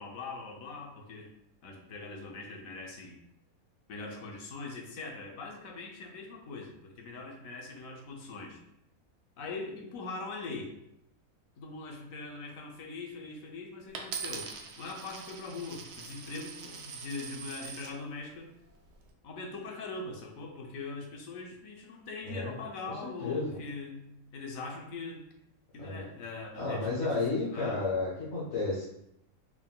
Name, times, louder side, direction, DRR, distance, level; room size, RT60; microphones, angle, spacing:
voice 1, 0.0-1.3 1.6-3.2 3.9-8.6 9.4-10.8 11.6-18.5 19.2-25.2 25.7-27.8, left 3 dB, 70° left, 1 dB, 1.1 m, -42 dB
Coin (dropping), 13.9-18.0 18.7-19.1, right 6 dB, 60° right, 0.7 m, -42 dB
voice 2, 23.2-23.6 25.8-26.1 26.5-28.8, left 3 dB, 55° left, -8 dB, 1.3 m, -32 dB
4.6 x 3.7 x 2.2 m, 0.80 s
omnidirectional pair, 1.5 m